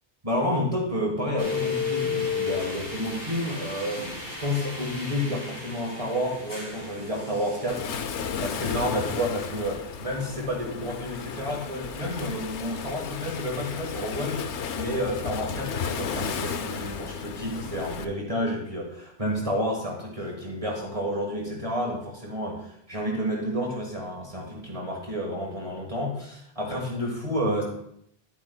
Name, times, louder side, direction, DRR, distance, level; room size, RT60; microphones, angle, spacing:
voice 1, 0.2-4.0 4.4-7.9 8.4-14.4 14.7-27.6, equal, 30° right, -1 dB, 1.5 m, -30 dB
sound 1, 1.4-7.8, left 5 dB, 55° left, 2.2 m, -33 dB
Waves surf, 7.7-18.0, left 6 dB, 85° left, 0.9 m, -34 dB
10.5 x 9.0 x 2.2 m, 0.70 s
omnidirectional pair, 1.1 m